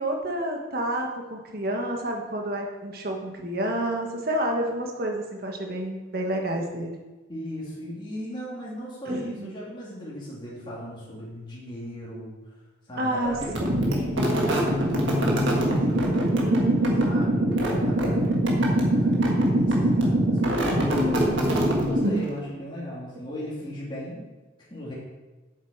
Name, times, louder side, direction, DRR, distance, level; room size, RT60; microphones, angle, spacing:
voice 1, 0.0-6.9 9.1-9.5 13.0-13.8 16.4-17.2 20.5-21.4, right 1 dB, 50° right, 1 dB, 1.3 m, -29 dB
voice 2, 7.3-12.5 12.9-16.3 17.0-20.8 21.8-24.3 24.6-24.9, equal, 25° left, -6 dB, 2.0 m, -37 dB
sound 1, 13.4-22.4, right 1 dB, 70° right, 1.6 m, -23 dB
7.5 x 7.3 x 4.7 m, 1.2 s
head